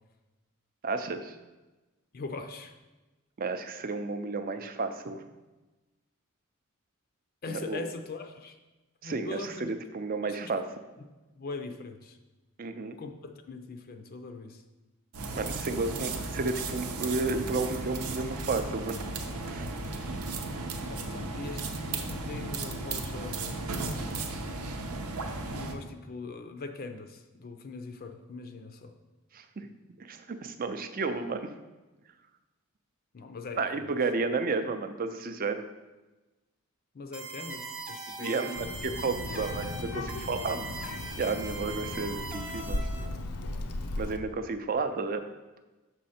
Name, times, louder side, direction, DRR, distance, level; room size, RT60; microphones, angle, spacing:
voice 1, 0.8-1.4 3.4-5.2 7.5-7.9 9.0-10.6 12.6-13.0 15.3-19.0 19.4-19.7 29.3-29.7 30.0-31.5 33.6-35.7 38.2-40.7 41.2-42.9 44.0-45.2, right 3 dB, 40° right, 8 dB, 0.5 m, -32 dB
voice 2, 2.1-2.8 7.4-8.6 9.0-9.7 10.2-10.5 11.4-12.2 13.0-14.6 20.9-23.7 25.5-28.9 33.1-33.9 36.9-38.6, left 3 dB, 40° left, 6 dB, 0.5 m, -41 dB
sound 1, 15.1-25.7, right 3 dB, 90° right, 0.8 m, -35 dB
sound 2, 37.1-43.1, right 3 dB, 5° right, 0.7 m, -41 dB
Child speech kid speaking, 38.6-44.2, left 2 dB, 85° left, 0.6 m, -36 dB
6.3 x 5.6 x 4.2 m, 1.1 s
head